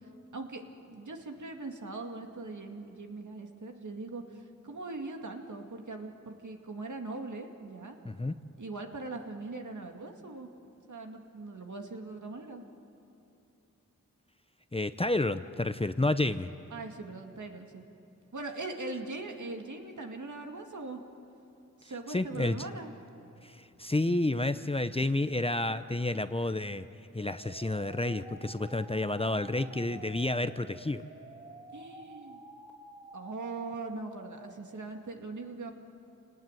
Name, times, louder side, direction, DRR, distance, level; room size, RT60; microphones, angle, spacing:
voice 1, 0.3-8.0 8.6-10.5 10.9-12.6 16.7-17.8 18.3-21.0 21.8-22.9 31.7-32.4 33.1-35.7, right 3 dB, 60° right, 3 dB, 2.3 m, -41 dB
voice 2, 8.0-8.3 14.7-16.5 22.1-22.7 23.4-26.9 27.1-31.0, left 2 dB, 15° left, 11 dB, 0.7 m, -30 dB
sound 1, 27.2-34.5, right 1 dB, 20° right, 3.7 m, -50 dB
27.0 x 19.0 x 9.2 m, 2.9 s
cardioid pair, 60°, 33 cm